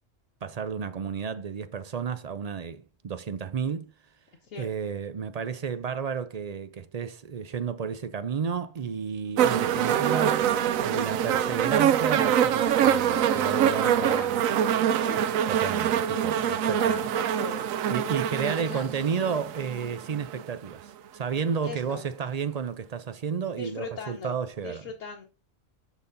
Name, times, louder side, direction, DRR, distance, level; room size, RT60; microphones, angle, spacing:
voice 1, 0.4-3.9 4.6-10.5 10.8-14.4 15.1-17.0 17.9-24.8, right 6 dB, 50° right, 0.4 m, -32 dB
sound 1, 9.4-20.5 21.4-21.5, right 9 dB, 90° right, 1.0 m, -25 dB
voice 2, 13.8-14.3 15.1-15.5 16.1-17.7 18.6-18.8 21.6-22.1 23.6-25.3, left 4 dB, 75° left, 1.3 m, -40 dB
12.0 x 4.1 x 2.6 m
omnidirectional pair, 1.4 m